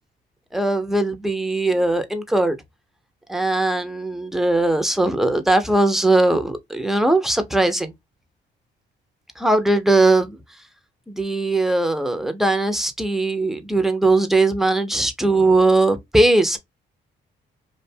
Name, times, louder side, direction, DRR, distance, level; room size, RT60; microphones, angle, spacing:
voice 1, 0.5-2.6 3.3-7.9 9.4-10.4 11.1-16.6, right 2 dB, ahead, 0.6 m, -19 dB
2.5 x 2.2 x 2.6 m
cardioid pair, 90°, 20 cm